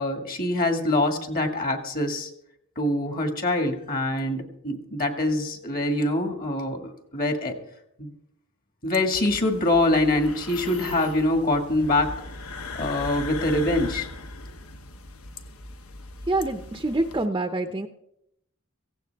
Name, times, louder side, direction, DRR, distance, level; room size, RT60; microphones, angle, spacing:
voice 1, 0.0-2.3 2.8-7.5 8.0-8.1 8.8-12.1 12.7-14.1, left 1 dB, 45° left, 5 dB, 1.9 m, -24 dB
sound 1, 9.1-17.3, left 2 dB, 75° left, 1.1 m, -39 dB
voice 2, 16.3-17.9, right 2 dB, 20° right, 7 dB, 0.7 m, -26 dB
17.0 x 16.0 x 3.5 m, 0.78 s
head